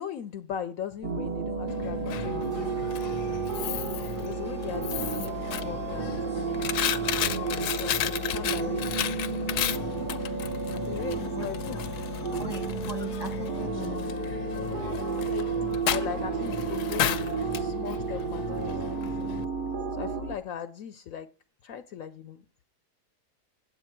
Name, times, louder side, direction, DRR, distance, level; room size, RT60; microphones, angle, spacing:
voice 1, 0.0-3.5 4.2-6.8 7.8-9.2 10.7-11.8 12.3-12.4 15.2-19.4 19.9-21.3 21.6-22.4, left 9 dB, 70° left, 11 dB, 0.9 m, -39 dB
sound 1, 1.0-20.4, right 5 dB, 45° right, 0.7 m, -32 dB
Coin (dropping), 1.7-19.4, left 10 dB, 85° left, 1.2 m, -34 dB
sound 2, 2.5-13.9, right 1 dB, 80° right, 3.8 m, -53 dB
voice 2, 11.3-11.8 12.4-14.2, left 2 dB, 15° right, 5 dB, 1.3 m, -40 dB
9.2 x 8.1 x 4.5 m, 0.36 s
omnidirectional pair, 1.7 m